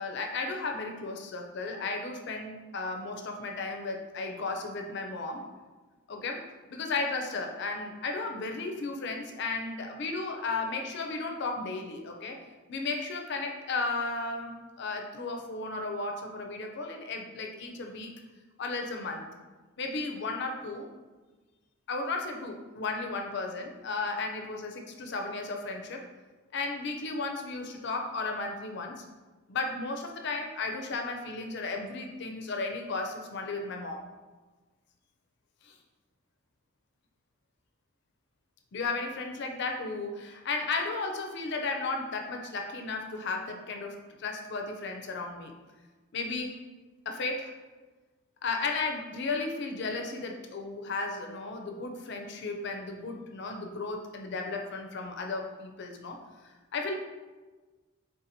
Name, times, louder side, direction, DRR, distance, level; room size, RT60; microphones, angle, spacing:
voice 1, 0.0-5.4 6.1-6.4 6.7-12.4 12.7-18.1 18.6-19.2 19.8-20.9 21.9-26.0 26.5-29.0 29.5-34.0 35.7-35.8 38.7-45.5 46.1-46.6 47.1-47.5 48.4-56.2 56.7-56.9, left 3 dB, 50° left, 3 dB, 0.4 m, -34 dB
4.2 x 3.6 x 2.6 m, 1.3 s
head